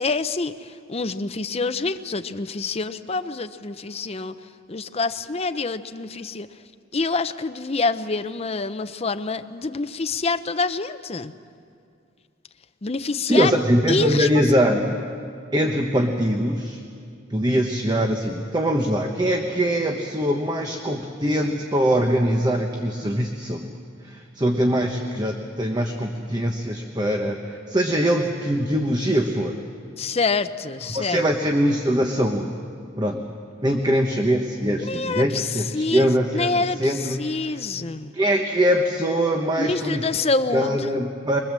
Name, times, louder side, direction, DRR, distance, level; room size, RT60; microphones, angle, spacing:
voice 1, 0.0-4.3 4.7-6.5 6.9-11.3 12.8-13.5 13.9-14.4 30.0-31.2 34.8-38.1 39.6-41.0, left 3 dB, 30° left, 10 dB, 0.6 m, -26 dB
voice 2, 13.3-14.9 15.5-16.8 17.3-23.8 24.0-29.6 30.9-32.5 33.0-33.2 33.6-37.6 38.1-40.1 40.5-41.4, equal, 20° right, 3 dB, 1.0 m, -22 dB
23.0 x 22.0 x 7.5 m, 2.4 s
head